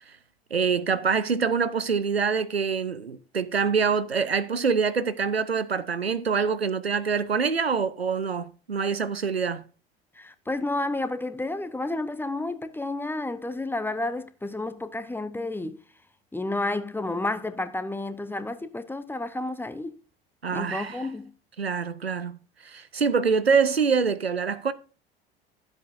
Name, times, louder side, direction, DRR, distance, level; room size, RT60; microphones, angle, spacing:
voice 1, 0.5-9.6 20.4-21.0 21.6-22.4 22.6-24.7, right 5 dB, 90° right, 0.6 m, -25 dB
voice 2, 10.1-15.8 16.3-19.9 20.5-21.3, left 2 dB, 5° left, 0.8 m, -31 dB
12.5 x 7.9 x 2.6 m
figure-of-eight pair, 65°, 30 cm